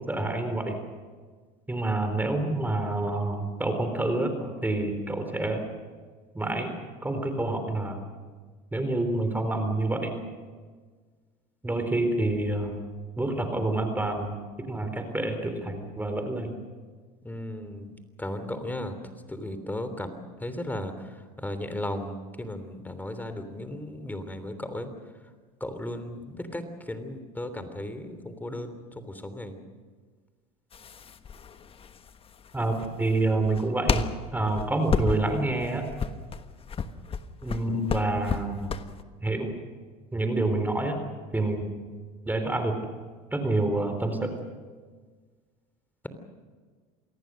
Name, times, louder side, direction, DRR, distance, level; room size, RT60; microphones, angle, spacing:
voice 1, 0.1-0.8 1.7-5.6 6.3-6.7 7.0-8.0 8.7-10.2 11.6-12.8 13.2-14.4 14.7-16.5 32.5-34.0 34.3-35.8 37.4-38.7 39.2-39.5 40.1-41.0 41.3-41.7 42.3-42.8 43.3-44.4, right 2 dB, 10° right, 6 dB, 4.1 m, -27 dB
voice 2, 17.2-17.9 18.2-18.9 19.3-20.9 21.4-24.9 25.6-26.6 26.9-29.5, left 1 dB, 10° left, 9 dB, 3.3 m, -35 dB
sound 1, 30.7-39.0, left 6 dB, 30° left, 1.3 m, -31 dB
27.5 x 19.0 x 6.5 m, 1.5 s
supercardioid pair, 90°, 19 cm